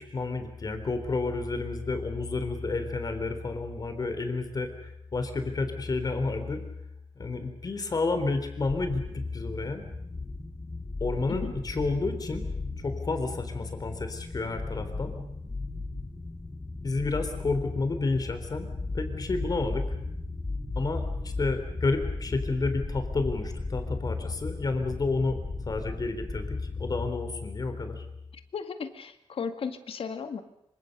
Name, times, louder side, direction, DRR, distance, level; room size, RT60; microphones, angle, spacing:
voice 1, 0.0-6.6 7.2-9.8 11.0-12.4 12.8-15.1 16.8-18.7 18.9-19.9 20.8-25.4 25.7-28.0, left 3 dB, 40° left, 7 dB, 3.8 m, -30 dB
sound 1, 8.7-27.1, left 3 dB, 25° left, 3.6 m, -36 dB
voice 2, 28.5-30.4, left 6 dB, 70° left, 8 dB, 2.0 m, -35 dB
26.0 x 25.5 x 6.7 m, 0.76 s
wide cardioid pair, 135°, 10 cm